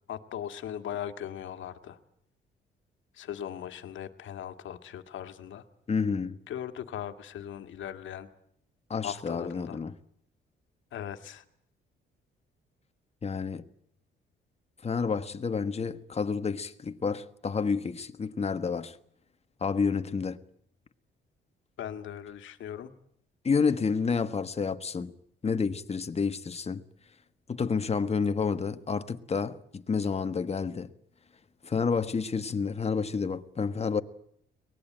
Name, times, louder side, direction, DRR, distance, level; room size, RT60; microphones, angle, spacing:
voice 1, 0.1-2.0 3.1-5.6 6.5-8.3 9.0-9.8 10.9-11.4 21.8-22.9, left 10 dB, 75° left, 1.9 m, -39 dB
voice 2, 5.9-6.4 8.9-9.9 13.2-13.7 14.8-19.0 19.6-20.4 23.4-25.1 25.4-26.8 27.5-30.9 31.6-34.0, left 5 dB, 30° left, 1.4 m, -29 dB
23.5 x 19.5 x 9.0 m
cardioid pair, 90°, 20 cm